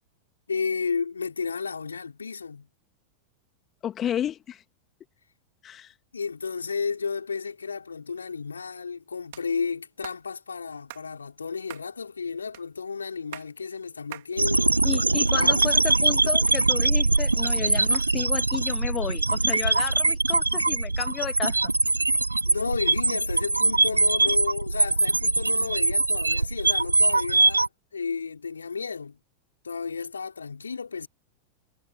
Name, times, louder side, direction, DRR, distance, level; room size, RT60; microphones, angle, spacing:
voice 1, 0.5-2.7 6.1-14.9 15.4-15.7 22.4-29.2 29.6-31.1, left 5 dB, 75° left, 4.3 m, -32 dB
voice 2, 3.8-4.6 5.6-5.9 14.8-21.7, left 10 dB, 25° left, 2.1 m, -32 dB
sound 1, 9.3-9.5 10.0-10.2 10.9-11.1 11.7-11.9 12.5-12.7 13.2-13.5 14.1-14.3 14.7-15.4 15.6-15.8 16.5-17.0 17.9-18.1, right 17 dB, 55° right, 4.2 m, -43 dB
sound 2, 14.4-27.7, right 3 dB, 80° right, 0.5 m, -22 dB
figure-of-eight pair, 90°, 0 cm